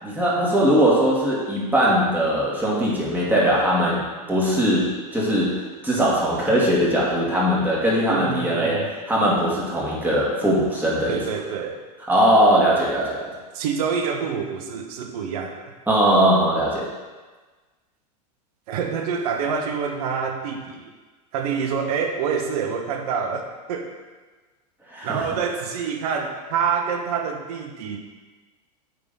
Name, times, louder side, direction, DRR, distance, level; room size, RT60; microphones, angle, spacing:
voice 1, 0.0-8.8 9.1-11.2 12.1-13.3 15.9-16.9 24.9-25.2, equal, 10° right, -6 dB, 2.0 m, -20 dB
voice 2, 8.1-8.9 11.0-11.8 13.5-15.7 18.7-20.9 21.3-23.9 25.0-28.0, right 6 dB, 65° right, 4 dB, 1.2 m, -27 dB
8.3 x 3.9 x 5.4 m, 1.3 s
supercardioid pair, 135°, 21 cm